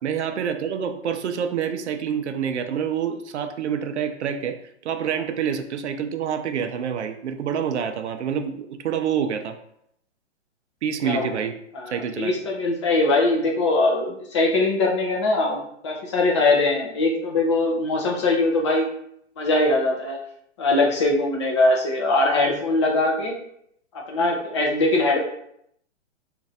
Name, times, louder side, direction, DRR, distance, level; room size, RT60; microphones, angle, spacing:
voice 1, 0.0-4.6 4.8-9.6 10.8-11.5 11.9-12.3, right 8 dB, 70° right, 7 dB, 0.5 m, -27 dB
voice 2, 11.0-11.4 11.7-18.9 19.4-20.2 20.6-23.4 24.1-25.2, left 2 dB, 25° left, -1 dB, 0.4 m, -21 dB
3.0 x 2.5 x 2.6 m, 0.71 s
hypercardioid pair, 135°, 36 cm